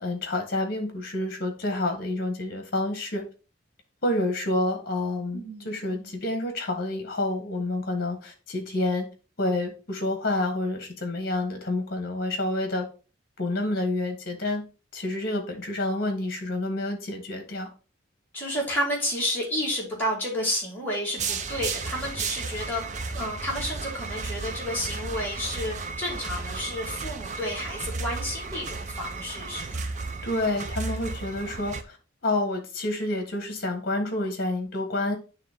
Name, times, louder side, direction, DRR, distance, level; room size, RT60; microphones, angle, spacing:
voice 1, 0.0-3.2 4.0-9.1 9.4-12.9 13.4-14.6 14.9-17.7 30.2-32.0 32.2-35.1, left 2 dB, 50° left, 5 dB, 1.6 m, -28 dB
voice 2, 5.3-6.1 18.3-22.8 23.1-29.9, left 1 dB, 10° left, -5 dB, 2.4 m, -31 dB
sound 1, 21.2-31.8, right 4 dB, 35° right, 0.5 m, -34 dB
9.3 x 3.3 x 3.7 m, 0.34 s
head